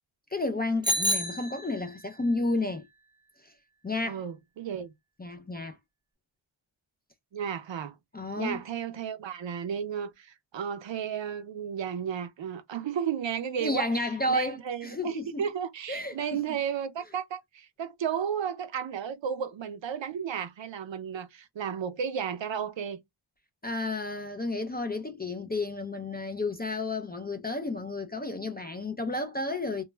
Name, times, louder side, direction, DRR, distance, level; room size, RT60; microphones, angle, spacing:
voice 1, 0.3-2.9 3.4-3.5 3.8-4.2 5.2-5.8 8.1-8.6 13.6-15.4 15.9-16.4 23.6-29.8, left 2 dB, 20° left, 0.3 m, -31 dB
Bicycle bell, 0.8-2.1, equal, 10° right, 0.7 m, -29 dB
voice 2, 4.0-4.9 7.3-8.0 8.4-23.0, right 8 dB, 65° right, 0.5 m, -33 dB
2.2 x 2.2 x 3.1 m
wide cardioid pair, 55°, 49 cm